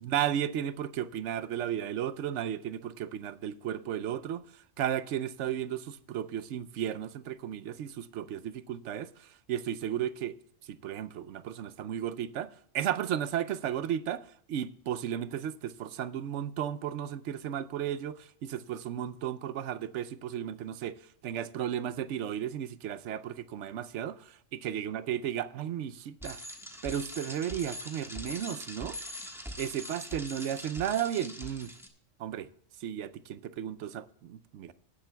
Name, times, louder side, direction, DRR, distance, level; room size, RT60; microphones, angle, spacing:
voice 1, 0.0-10.4 10.6-26.4 26.8-29.0 29.6-31.7 32.2-32.5 32.8-34.7, right 10 dB, 75° right, 0.9 m, -34 dB
Bicycle, 26.2-31.9, equal, ahead, 1.2 m, -42 dB
18.0 x 10.5 x 2.2 m
omnidirectional pair, 1.3 m